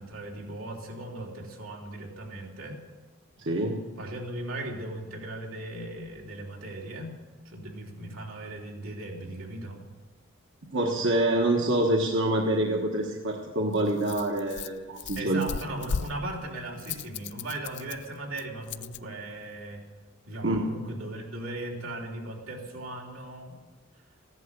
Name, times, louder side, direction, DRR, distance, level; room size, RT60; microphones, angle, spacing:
voice 1, 0.0-2.8 4.0-7.1 7.5-9.8 15.1-19.8 20.3-23.6, right 1 dB, 90° right, -2 dB, 3.4 m, -38 dB
voice 2, 3.4-3.8 10.7-15.4 20.4-20.7, right 1 dB, 65° right, 0 dB, 1.4 m, -26 dB
Rattle, 13.0-19.0, left 6 dB, 55° left, 0.4 m, -38 dB
15.0 x 11.0 x 6.7 m, 1.3 s
head